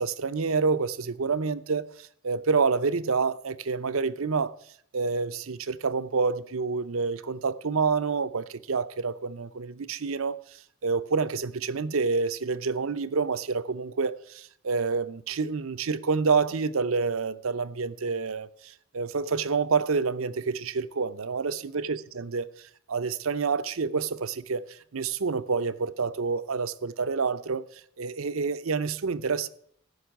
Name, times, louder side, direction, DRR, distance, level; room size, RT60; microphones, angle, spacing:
voice 1, 0.0-4.5 4.9-10.4 10.8-22.5 22.9-27.6 28.0-29.5, right 4 dB, 70° right, 0.6 m, -28 dB
14.5 x 6.1 x 9.2 m
head